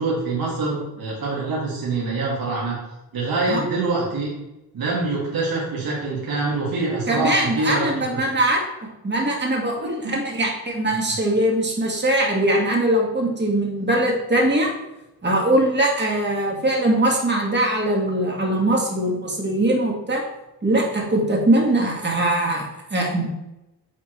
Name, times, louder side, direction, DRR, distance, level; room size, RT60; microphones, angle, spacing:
voice 1, 0.0-2.8 3.1-4.3 4.7-7.9 9.8-10.1, right 3 dB, 65° right, -6 dB, 2.4 m, -25 dB
voice 2, 7.1-14.7 15.2-20.2 20.6-23.3, right 1 dB, 30° right, -1 dB, 1.9 m, -21 dB
8.5 x 4.3 x 3.2 m, 0.93 s
cardioid pair, 90°, 39 cm